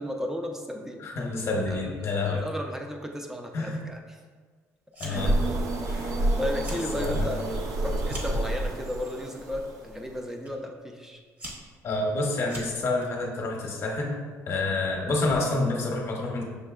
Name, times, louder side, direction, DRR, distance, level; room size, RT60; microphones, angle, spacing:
voice 1, 0.0-1.1 1.7-2.0 2.3-4.2 5.0-5.3 5.9-7.6 7.8-11.2, left 1 dB, 5° right, 3 dB, 0.5 m, -34 dB
voice 2, 1.0-2.4 3.5-3.8 5.0-5.3 7.0-7.2 11.8-14.2 14.5-16.4, left 2 dB, 45° left, 0 dB, 0.8 m, -28 dB
Fire, 4.9-5.4 5.7-6.2 6.5-6.9 7.3-8.5 9.2-9.6 10.5-10.6 11.1-13.1, equal, 30° right, 1.0 m, -42 dB
sound 1, 5.1-10.2, right 1 dB, 70° right, 0.5 m, -29 dB
6.4 x 2.8 x 2.3 m, 1.6 s
cardioid pair, 110°, 6 cm